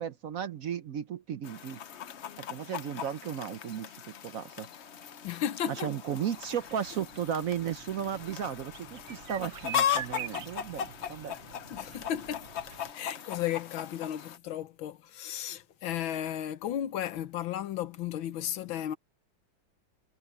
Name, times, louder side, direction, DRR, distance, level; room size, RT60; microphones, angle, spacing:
voice 1, 0.0-1.8 2.4-4.7 5.7-11.4, right 8 dB, 60° right, 0.9 m, -35 dB
Chicken rooster, 1.4-14.4, left 9 dB, 60° left, 0.7 m, -38 dB
sound 1, 4.6-13.3, left 1 dB, 30° left, 6.4 m, -61 dB
voice 2, 5.2-5.9 11.7-12.5 12.9-19.0, left 11 dB, 90° left, 1.8 m, -34 dB
sound 2, 5.9-12.9, right 10 dB, 90° right, 1.8 m, -46 dB
omnidirectional pair, 2.1 m